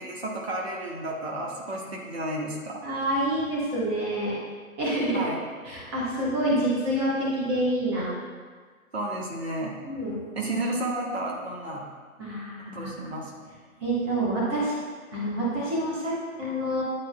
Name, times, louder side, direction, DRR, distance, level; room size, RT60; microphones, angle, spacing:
voice 1, 0.0-2.8 5.1-5.4 8.9-9.7 10.3-11.9 12.7-13.3, right 1 dB, 45° right, -2 dB, 1.1 m, -32 dB
voice 2, 2.8-4.4 4.8-5.3 5.7-8.1 9.8-10.2 12.2-12.9 13.8-14.7 15.1-16.8, right 1 dB, 15° right, -7 dB, 1.2 m, -27 dB
10.0 x 4.5 x 2.2 m, 1.5 s
figure-of-eight pair, 135°, 43 cm